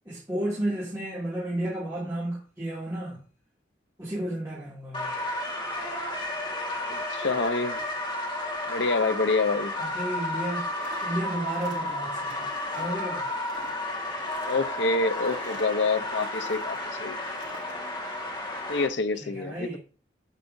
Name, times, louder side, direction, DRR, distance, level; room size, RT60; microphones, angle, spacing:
voice 1, 0.1-3.2 4.0-5.2 9.8-10.7 11.0-12.5 12.7-13.3 19.1-19.8, right 1 dB, 15° right, 2.4 m, -32 dB
sound 1, 4.9-18.9, left 1 dB, 25° left, 1.7 m, -32 dB
voice 2, 6.9-7.8 8.7-9.7 14.4-17.2 18.7-19.8, left 3 dB, 65° left, 0.7 m, -27 dB
sound 2, 10.6-16.8 17.2-17.8, right 2 dB, 75° right, 2.8 m, -46 dB
8.3 x 8.0 x 2.7 m
head